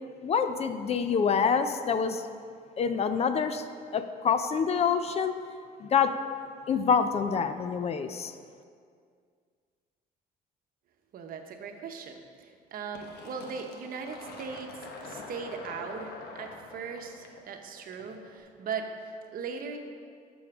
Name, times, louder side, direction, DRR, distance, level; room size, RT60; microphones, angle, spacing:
voice 1, 0.2-2.2 2.8-3.6 3.9-5.3 5.8-6.1 6.7-8.3, left 6 dB, 40° left, 10 dB, 0.5 m, -26 dB
voice 2, 11.1-19.8, right 5 dB, 60° right, 4 dB, 1.0 m, -39 dB
Fill (with liquid), 12.9-18.3, left 3 dB, 70° left, 1.2 m, -45 dB
11.5 x 7.0 x 3.6 m, 2.1 s
cardioid pair, 110°, 17 cm